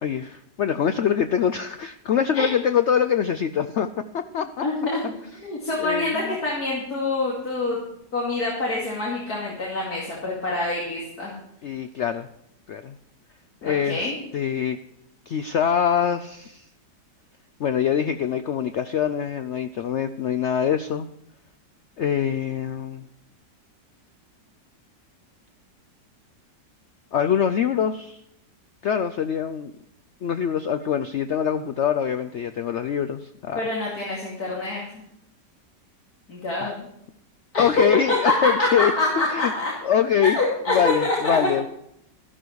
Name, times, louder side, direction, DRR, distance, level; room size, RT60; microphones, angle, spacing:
voice 1, 0.0-3.9 4.1-4.6 5.8-6.1 11.6-12.3 12.7-13.0 13.6-14.8 15.3-16.7 17.6-21.1 22.0-23.1 27.1-28.2 28.8-29.7 30.2-33.6 36.6-36.7 37.6-38.9 39.3-39.5 39.8-40.4 40.7-41.7, left 8 dB, 90° left, 10 dB, 0.6 m, -24 dB
voice 2, 4.3-5.0 5.3-7.8 8.1-11.3 13.6-14.2 33.6-35.0 36.3-36.9 37.5-37.6 38.1-39.7 40.2-41.4, left 2 dB, 60° left, -5 dB, 3.0 m, -26 dB
13.5 x 12.0 x 4.7 m, 0.76 s
omnidirectional pair, 1.9 m